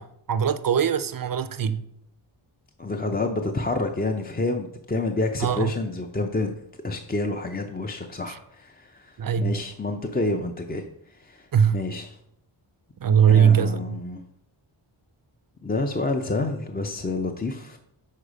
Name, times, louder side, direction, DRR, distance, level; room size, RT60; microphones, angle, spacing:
voice 1, 0.0-1.8 5.4-5.7 8.3-8.4 9.2-9.5 11.5-11.8 13.0-14.0, right 8 dB, 45° right, 0.5 m, -21 dB
voice 2, 2.8-6.5 6.8-10.8 11.1-11.5 11.7-12.2 13.3-14.2 15.6-17.8, left 2 dB, 20° left, 0.4 m, -28 dB
6.5 x 4.7 x 5.0 m
wide cardioid pair, 95°, 50 cm